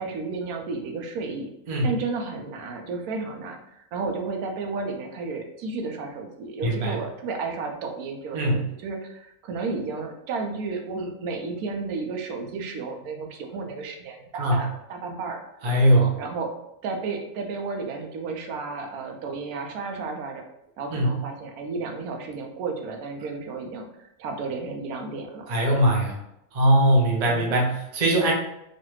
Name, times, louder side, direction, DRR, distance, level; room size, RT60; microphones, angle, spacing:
voice 1, 0.0-1.5 1.8-16.5 16.8-20.4 20.8-25.8 27.3-27.5, right 4 dB, 80° right, 3 dB, 1.1 m, -33 dB
voice 2, 6.6-7.0 8.3-8.7 14.3-14.6 15.6-16.2 20.9-21.1 25.5-26.2 26.5-28.3, right 1 dB, 45° right, -1 dB, 0.5 m, -21 dB
3.1 x 2.4 x 3.0 m, 0.81 s
omnidirectional pair, 1.6 m